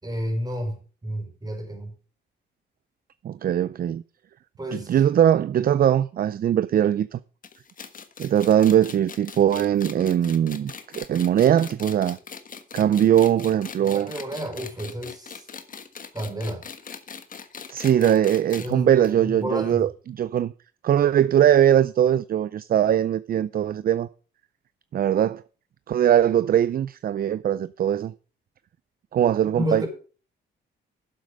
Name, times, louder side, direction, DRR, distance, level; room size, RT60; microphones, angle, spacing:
voice 1, 0.0-1.9 4.6-5.0 13.8-15.5 16.1-16.6 18.6-19.9 29.4-29.9, equal, 20° right, 4.8 m, -31 dB
voice 2, 3.2-4.0 4.7-7.2 8.2-12.2 12.7-14.1 17.7-19.9 20.2-20.5 20.8-24.1 24.9-25.4 25.9-28.1 29.1-29.8, right 10 dB, 50° right, 0.5 m, -21 dB
sound 1, 7.4-18.7 19.0-19.1 19.4-19.5 20.4-20.5, left 6 dB, 45° left, 1.4 m, -41 dB
11.5 x 7.7 x 5.3 m
cardioid pair, 90°, 20 cm